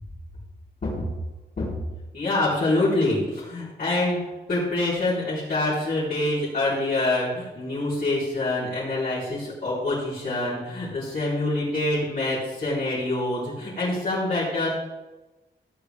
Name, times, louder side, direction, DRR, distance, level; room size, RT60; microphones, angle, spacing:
voice 1, 2.1-4.2 4.5-14.7, left 2 dB, 50° left, -11 dB, 3.7 m, -25 dB
15.0 x 8.2 x 3.5 m, 1.1 s
wide cardioid pair, 180°, 19 cm